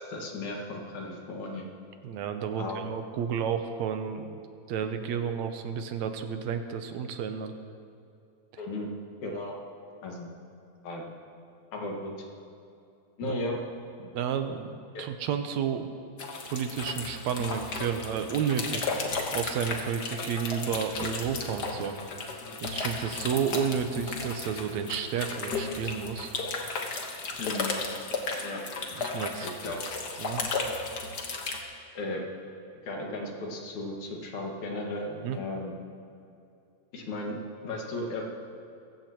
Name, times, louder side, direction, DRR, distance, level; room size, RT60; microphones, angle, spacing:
voice 1, 0.0-1.6 2.6-2.8 8.6-8.9 9.2-9.5 10.0-10.3 10.8-11.0 11.7-12.1 13.2-13.6 14.9-15.1 27.4-27.7 28.4-28.6 29.4-29.8 31.9-32.3 32.8-35.7 36.9-37.4 37.6-38.2, left 2 dB, 80° left, -1 dB, 3.2 m, -35 dB
voice 2, 2.0-4.4 4.7-7.5 13.2-13.4 14.0-15.9 16.5-18.9 19.3-22.1 22.6-26.3 28.9-29.5 30.2-30.4 35.2-35.4, right 7 dB, 80° right, 7 dB, 2.0 m, -31 dB
sound 1, 16.2-31.6, left 3 dB, 50° left, 1.4 m, -34 dB
21.5 x 15.0 x 3.0 m, 2.6 s
omnidirectional pair, 3.3 m